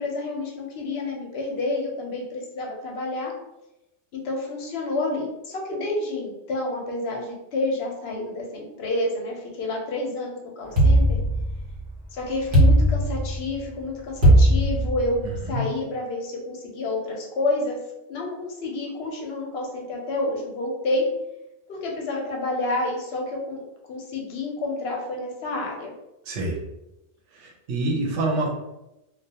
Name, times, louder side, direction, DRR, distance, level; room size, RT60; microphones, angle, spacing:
voice 1, 0.0-3.3 4.1-11.2 12.1-17.8 18.1-21.0 21.7-23.6 23.9-25.9, left 2 dB, 65° left, 0 dB, 0.8 m, -29 dB
sound 1, 10.8-11.9 12.5-13.6 14.2-15.3, right 1 dB, 50° right, 1.0 m, -18 dB
voice 2, 26.3-26.6 27.3-28.5, right 2 dB, 90° right, 0 dB, 1.0 m, -26 dB
2.3 x 2.2 x 2.7 m, 0.93 s
omnidirectional pair, 1.2 m